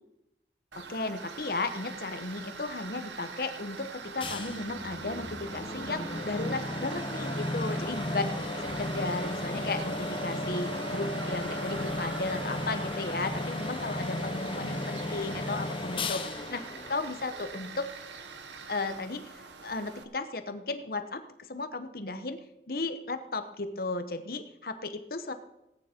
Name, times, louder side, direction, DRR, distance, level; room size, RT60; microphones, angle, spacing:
Tools, 0.7-20.0, right 4 dB, 75° right, 1.2 m, -42 dB
voice 1, 0.8-8.3 8.6-16.2 16.5-16.6 16.9-17.9 18.7-21.2 21.5-22.4 22.7-25.3, left 3 dB, 50° left, 9 dB, 1.1 m, -35 dB
sound 1, 4.2-17.7, left 2 dB, 30° left, 0.9 m, -35 dB
18.0 x 9.5 x 4.4 m, 0.87 s
head